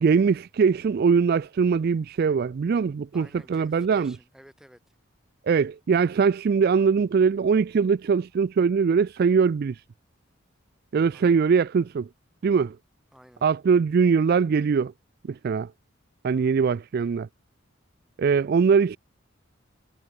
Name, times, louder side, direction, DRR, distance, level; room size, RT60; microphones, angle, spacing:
voice 1, 0.0-4.1 5.5-9.8 10.9-12.1 12.4-12.8 13.4-14.9 15.3-15.7 16.2-17.3 18.2-19.0, right 5 dB, 50° right, 0.3 m, -22 dB
voice 2, 3.1-5.0 11.1-11.4 13.1-13.5 16.3-16.6, equal, 5° right, 3.9 m, -53 dB
head